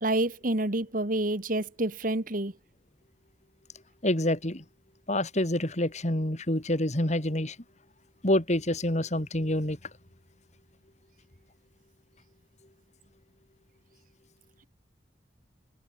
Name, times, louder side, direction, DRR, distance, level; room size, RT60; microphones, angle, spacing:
voice 1, 0.0-2.5, right 1 dB, 50° right, 2.0 m, -28 dB
voice 2, 4.0-4.6 5.1-7.6 8.2-9.8, left 1 dB, 40° left, 3.3 m, -27 dB
head